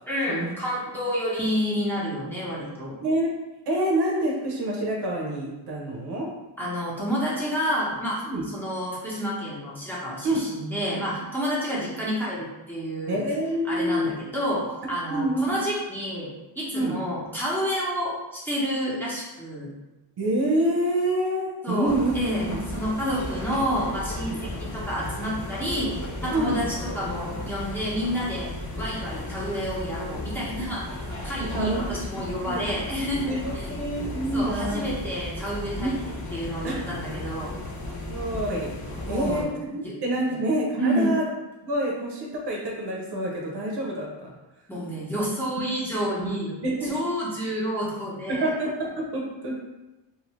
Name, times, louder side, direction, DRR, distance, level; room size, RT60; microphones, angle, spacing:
voice 1, 0.1-3.0 6.6-8.2 8.5-13.2 13.6-16.3 16.6-19.7 21.6-22.4 22.7-25.9 26.2-28.5 28.8-31.0 31.2-33.7 34.3-37.5 39.0-39.5 39.8-39.9 40.3-40.4 40.8-41.1 44.7-46.5 46.9-48.5, equal, 5° left, -8 dB, 0.9 m, -29 dB
voice 2, 3.7-6.3 8.2-8.4 10.2-10.4 13.1-14.1 15.1-15.5 16.7-17.0 20.2-22.1 22.4-22.6 24.3-24.4 26.3-26.6 31.4-31.8 32.4-32.6 33.2-34.8 35.8-35.9 36.6-36.8 38.1-38.7 39.1-41.3 41.6-44.3 46.2-46.4 46.6-47.0 48.3-49.5, right 1 dB, 60° right, -1 dB, 0.8 m, -27 dB
sound 1, 21.9-39.4, left 1 dB, 40° left, 1.0 m, -35 dB
2.7 x 2.5 x 3.1 m, 1.0 s
cardioid pair, 115°, 46 cm